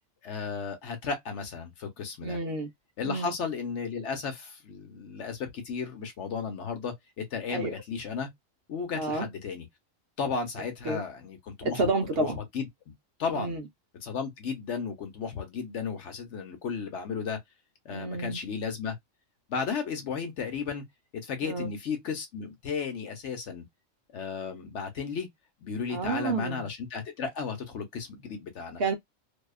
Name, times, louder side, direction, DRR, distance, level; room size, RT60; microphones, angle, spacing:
voice 1, 0.2-2.4 3.0-8.3 8.7-9.7 10.2-12.7 13.2-13.6 14.0-17.4 17.8-19.0 19.5-20.8 21.1-23.6 24.1-25.3 25.6-28.8, left 5 dB, 65° left, 1.1 m, -34 dB
voice 2, 2.2-2.7 3.0-3.3 7.5-7.7 9.0-9.3 10.9-11.0 11.6-12.4 13.4-13.6 17.9-18.4 21.4-21.7 25.9-26.6 28.8-28.9, right 3 dB, 60° right, 0.8 m, -30 dB
2.8 x 2.2 x 2.2 m
omnidirectional pair, 1.3 m